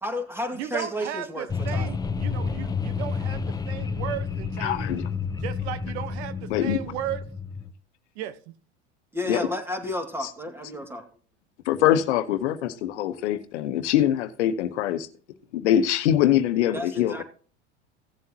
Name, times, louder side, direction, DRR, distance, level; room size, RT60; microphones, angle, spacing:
voice 1, 0.0-1.9 9.1-11.1 16.7-17.2, left 1 dB, 5° right, 2.3 m, -32 dB
voice 2, 0.5-4.9 5.4-7.2 8.1-8.5, right 10 dB, 70° right, 1.2 m, -35 dB
sound 1, 1.5-7.7, left 5 dB, 10° left, 0.8 m, -30 dB
voice 3, 4.6-5.0 6.5-6.8 9.3-9.5 11.6-15.1 15.5-17.2, left 11 dB, 80° left, 1.1 m, -23 dB
16.5 x 7.4 x 2.9 m
supercardioid pair, 105°, 34 cm